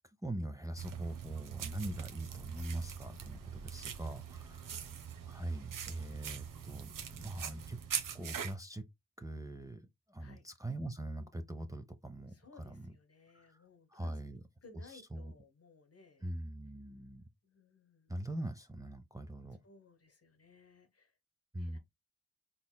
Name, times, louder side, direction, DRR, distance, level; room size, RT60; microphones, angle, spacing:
voice 1, 0.2-4.7 5.2-7.8 8.1-8.8 9.2-12.9 13.3-13.4 13.9-14.4 14.9-15.3 16.2-17.2 18.1-19.6 21.5-21.8, right 1 dB, 10° right, 0.6 m, -42 dB
sound 1, 0.8-8.5, right 8 dB, 80° right, 0.7 m, -43 dB
voice 2, 7.0-7.5 10.2-10.4 12.3-14.2 14.6-16.2 17.4-18.1 19.6-21.1 21.6-21.8, left 4 dB, 50° left, 1.1 m, -60 dB
4.0 x 3.8 x 2.2 m
cardioid pair, 45°, 32 cm